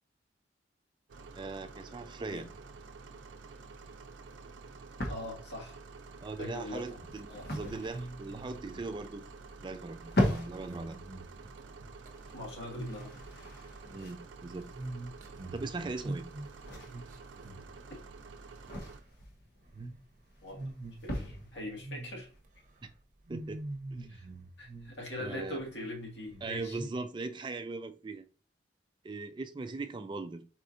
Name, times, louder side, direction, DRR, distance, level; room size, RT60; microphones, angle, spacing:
sound 1, 1.1-19.0, right 4 dB, 80° right, 0.5 m, -50 dB
voice 1, 1.3-2.5 6.2-9.3 9.6-11.0 13.9-14.7 15.5-16.3 22.8-22.9 23.3-23.6 23.9-24.1 25.2-25.6 26.4-28.2 29.0-30.4, right 3 dB, 25° right, 0.3 m, -39 dB
sound 2, 3.2-22.9, left 1 dB, 60° left, 1.2 m, -40 dB
voice 2, 5.1-5.8 6.4-6.9 7.3-7.7 12.3-13.1 20.4-20.7 21.0-22.3 24.0-24.2 24.6-26.8, left 1 dB, 75° left, 1.8 m, -42 dB
sound 3, 6.9-12.4 12.7-13.2 13.4-18.3 18.6-19.1 19.6-20.0 20.4-22.5 22.7-22.9 23.3-25.3 25.6-25.7 26.2-26.9, right 2 dB, 45° right, 0.8 m, -45 dB
4.3 x 4.3 x 2.5 m
head